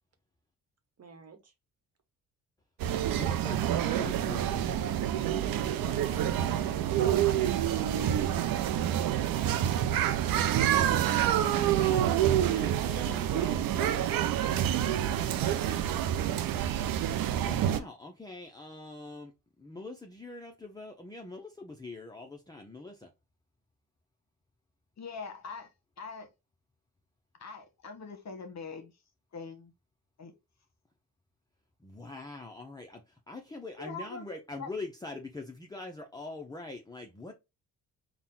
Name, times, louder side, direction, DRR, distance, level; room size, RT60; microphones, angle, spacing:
voice 1, 1.0-1.5 7.0-10.0, right 5 dB, 45° right, 1.2 m, -47 dB
sound 1, 2.8-17.8, right 11 dB, 70° right, 0.6 m, -27 dB
voice 2, 3.0-6.9 7.7-7.9 11.3-14.1 17.3-23.1 31.8-37.3, left 3 dB, 10° left, 0.7 m, -44 dB
voice 3, 25.0-25.7 26.0-26.3 27.4-28.9 29.3-29.7 30.2-30.3 33.8-34.7, left 4 dB, 45° left, 1.1 m, -42 dB
4.1 x 2.3 x 3.6 m
supercardioid pair, 60°, 36 cm